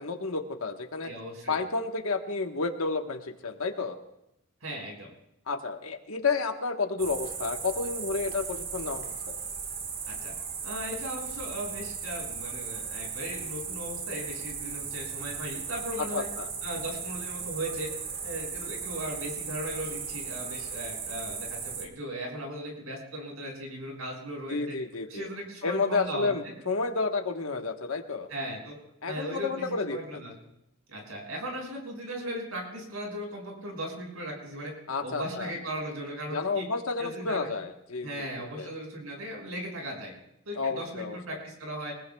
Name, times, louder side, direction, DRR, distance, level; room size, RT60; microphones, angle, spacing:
voice 1, 0.0-1.1 1.5-4.0 5.5-9.4 16.0-16.5 24.5-25.3 25.6-28.3 29.0-30.0 34.9-35.5 36.3-38.7 40.6-41.2, left 4 dB, 85° left, 5 dB, 1.4 m, -31 dB
voice 2, 1.0-1.6 4.6-5.1 10.1-10.3 10.6-16.3 16.6-17.9 18.2-24.7 25.1-26.5 28.3-28.8 29.1-30.3 30.9-34.7 35.0-36.6 37.0-37.5 38.0-40.1 40.4-41.9, right 1 dB, 85° right, 0 dB, 6.4 m, -37 dB
sound 1, 7.0-21.9, right 6 dB, 45° right, 1.6 m, -37 dB
25.5 x 20.5 x 2.3 m, 0.81 s
head